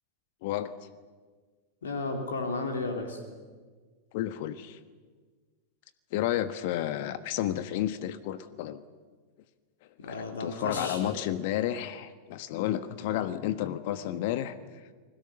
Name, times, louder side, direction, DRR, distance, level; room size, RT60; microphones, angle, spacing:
voice 1, 0.4-0.7 4.1-4.8 6.1-8.8 10.0-14.6, left 12 dB, 50° left, 13 dB, 1.2 m, -31 dB
voice 2, 1.8-3.2 10.0-11.1, left 3 dB, 65° left, 4 dB, 3.3 m, -33 dB
29.5 x 21.0 x 7.0 m, 1.5 s
figure-of-eight pair, 90°, 0 cm